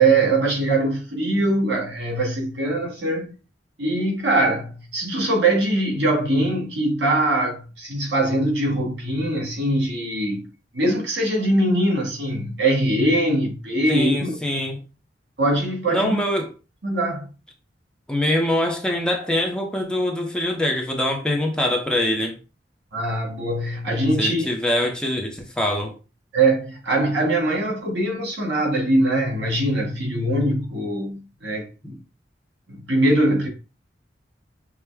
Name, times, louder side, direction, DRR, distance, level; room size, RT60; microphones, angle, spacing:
voice 1, 0.0-3.3 3.8-10.5 10.7-14.4 15.4-16.2 16.8-17.3 22.9-24.5 26.3-32.0 32.7-33.5, right 2 dB, 85° right, 2.1 m, -22 dB
voice 2, 13.9-14.8 15.9-16.5 18.1-22.4 24.2-25.9, left 1 dB, 5° left, 0.7 m, -23 dB
5.9 x 2.1 x 3.4 m
head